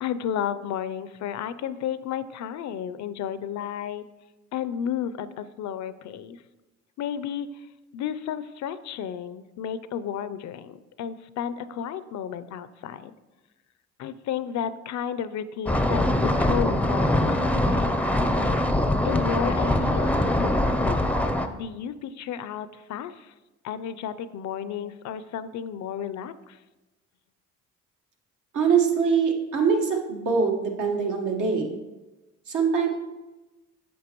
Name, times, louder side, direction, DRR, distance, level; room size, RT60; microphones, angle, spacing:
voice 1, 0.0-4.0 4.5-6.4 7.0-7.7 7.9-13.2 14.0-18.0 19.0-21.0 21.5-23.3 23.6-26.6, left 8 dB, 70° left, 13 dB, 0.5 m, -32 dB
sound 1, 15.7-21.5, left 1 dB, 5° left, 0.5 m, -23 dB
voice 2, 28.5-31.8 32.5-32.9, right 6 dB, 75° right, 1 dB, 1.4 m, -23 dB
8.4 x 6.3 x 3.0 m, 1.1 s
cardioid pair, 90°, 30 cm